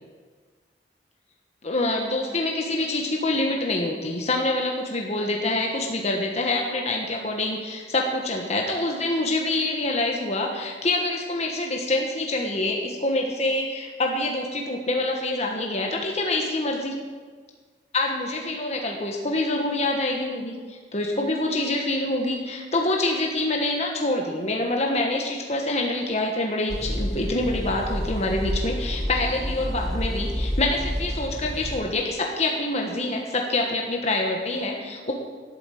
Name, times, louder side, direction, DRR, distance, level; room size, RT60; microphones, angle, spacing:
voice 1, 1.6-16.9 17.9-35.1, left 2 dB, 40° left, 0 dB, 1.4 m, -26 dB
sound 1, 26.7-31.8, equal, 5° left, 1.0 m, -29 dB
13.0 x 8.4 x 7.7 m, 1.5 s
head